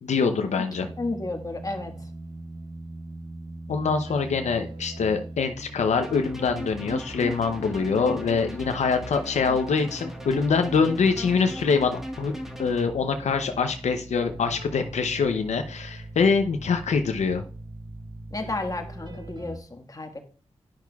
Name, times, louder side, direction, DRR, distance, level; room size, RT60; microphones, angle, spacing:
voice 1, 0.0-0.9 3.7-12.3 12.6-17.4, left 5 dB, 85° left, 6 dB, 0.6 m, -24 dB
sound 1, 0.7-19.6, right 1 dB, 40° right, 1.1 m, -41 dB
voice 2, 1.0-1.9 18.3-20.2, left 2 dB, 30° left, 4 dB, 1.5 m, -32 dB
sound 2, 6.0-12.9, equal, 5° right, 1.4 m, -38 dB
10.5 x 5.9 x 2.3 m, 0.40 s
cardioid pair, 50°, 12 cm